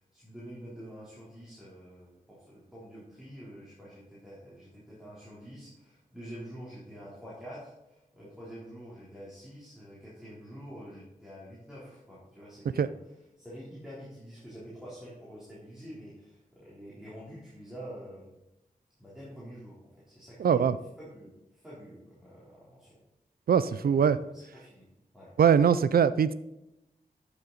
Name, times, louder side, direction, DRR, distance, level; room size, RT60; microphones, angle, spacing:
voice 1, 0.0-12.9 13.4-18.4 19.0-20.7 21.0-23.0 23.7-24.9 25.1-25.3, equal, 5° right, -9 dB, 3.5 m, -47 dB
voice 2, 20.4-20.8 23.5-24.2 25.4-26.3, right 7 dB, 85° right, 15 dB, 0.5 m, -22 dB
13.0 x 7.0 x 4.0 m, 0.90 s
wide cardioid pair, 100°, 15 cm